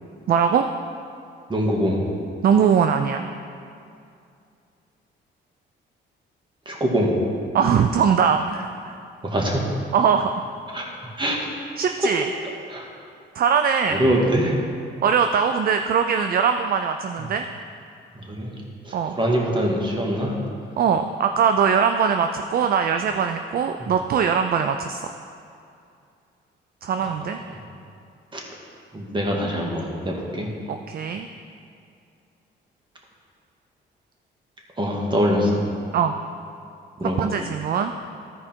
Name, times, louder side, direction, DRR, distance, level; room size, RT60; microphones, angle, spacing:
voice 1, 0.3-0.7 2.4-3.3 7.5-9.0 9.9-10.5 11.8-12.3 13.3-14.0 15.0-17.5 18.9-19.2 20.8-25.1 26.8-27.4 30.7-31.3 35.9-36.1 37.2-37.9, right 7 dB, 50° right, 7 dB, 0.4 m, -21 dB
voice 2, 1.5-2.0 6.6-7.2 9.2-9.6 10.7-10.9 11.2-11.4 12.7-12.9 14.0-14.5 17.2-17.3 18.1-18.5 18.8-20.4 28.3-28.4 28.9-30.5 34.8-35.7 37.0-37.3, equal, 25° right, -1 dB, 1.8 m, -23 dB
13.5 x 4.9 x 4.5 m, 2.5 s
cardioid pair, 90°, 20 cm